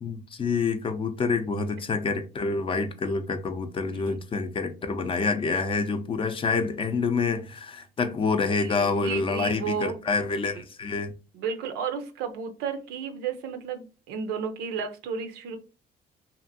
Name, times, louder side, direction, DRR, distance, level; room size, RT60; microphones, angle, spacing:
voice 1, 0.0-11.1, left 4 dB, 30° left, 0.5 m, -27 dB
voice 2, 8.6-10.0 10.5-10.6 11.3-15.6, right 6 dB, 85° right, 0.6 m, -33 dB
2.8 x 2.5 x 2.6 m
cardioid pair, 110°, 17 cm